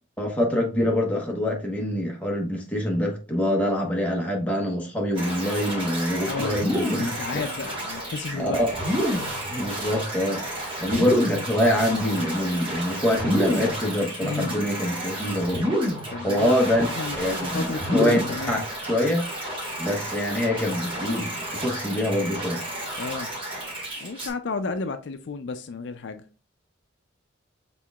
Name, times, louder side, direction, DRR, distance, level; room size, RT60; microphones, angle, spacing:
voice 1, 0.2-7.1 8.4-8.7 9.5-10.4 10.8-15.7 16.2-16.9 17.2-18.6 18.9-19.2 19.8-22.6, left 1 dB, 5° left, 1.0 m, -25 dB
sound 1, 5.1-24.3, right 1 dB, 25° right, 1.8 m, -33 dB
voice 2, 6.3-8.6 14.2-14.6 16.1-16.7 16.9-17.2 17.5-18.7 23.0-23.3 24.0-26.3, left 4 dB, 60° left, 0.4 m, -32 dB
sound 2, 6.5-7.2 8.7-9.5 10.8-11.6 13.1-13.8 15.5-16.2 17.7-18.5, left 1 dB, 10° right, 1.1 m, -27 dB
6.1 x 3.7 x 2.4 m
head